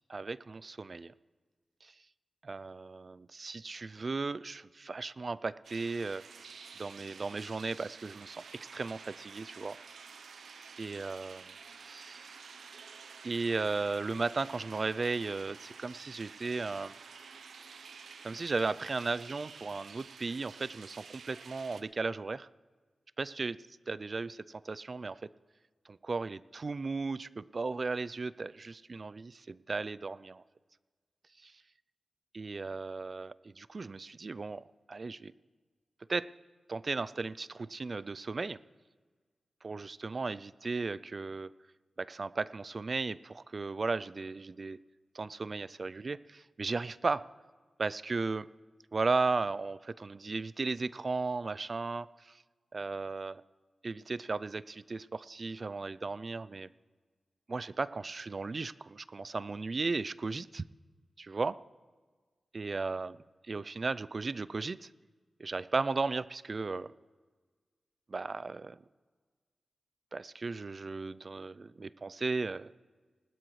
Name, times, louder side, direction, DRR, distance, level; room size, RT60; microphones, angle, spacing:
voice 1, 0.1-1.1 1.8-1.9 2.4-6.2 6.8-8.4 8.7-9.7 10.8-11.5 11.8-12.4 13.2-17.0 18.2-22.5 23.2-25.3 26.0-30.4 31.4-31.5 32.3-35.3 36.1-36.3 36.7-38.6 39.6-41.5 42.0-44.8 45.1-47.2 47.8-48.5 48.9-52.3 52.7-53.4 53.8-56.7 57.5-60.6 61.2-61.6 62.5-63.2 63.5-64.9 65.4-66.9 68.1-68.8 70.1-72.7, right 3 dB, 45° right, 17 dB, 0.3 m, -35 dB
sound 1, 5.6-21.8, right 5 dB, 85° right, 0.7 m, -50 dB
19.5 x 12.5 x 3.2 m, 1.4 s
wide cardioid pair, 80°, 0 cm